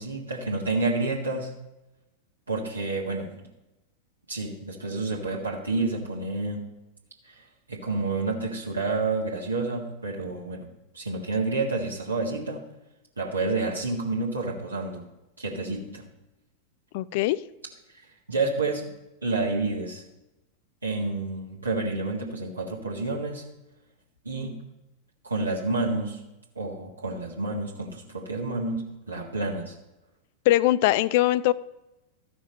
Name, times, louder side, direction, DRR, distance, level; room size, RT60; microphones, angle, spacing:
voice 1, 0.0-1.5 2.5-3.5 4.3-6.7 7.2-10.7 10.9-12.6 13.2-15.0 15.4-16.0 17.9-18.9 19.2-20.0 20.8-23.4 24.2-24.5 25.2-26.2 26.5-29.7, right 3 dB, 80° right, -2 dB, 1.7 m, -29 dB
voice 2, 16.9-17.4 30.5-31.5, left 15 dB, 50° left, 18 dB, 0.4 m, -21 dB
13.5 x 6.0 x 5.4 m, 0.97 s
figure-of-eight pair, 90°, 0 cm